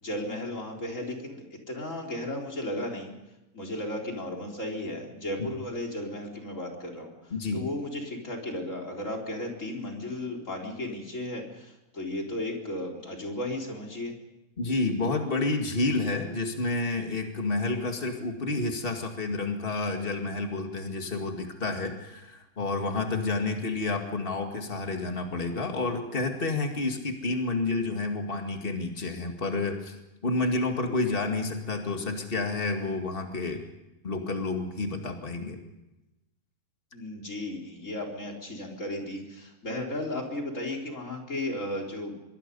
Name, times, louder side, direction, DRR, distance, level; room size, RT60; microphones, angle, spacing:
voice 1, 0.0-3.1 3.5-14.1 36.9-42.2, left 1 dB, 20° left, 1 dB, 3.9 m, -35 dB
voice 2, 7.3-7.6 14.6-30.0 30.2-33.6 34.0-35.6, left 3 dB, 70° left, 3 dB, 0.5 m, -30 dB
26.0 x 23.0 x 5.5 m, 0.97 s
omnidirectional pair, 4.9 m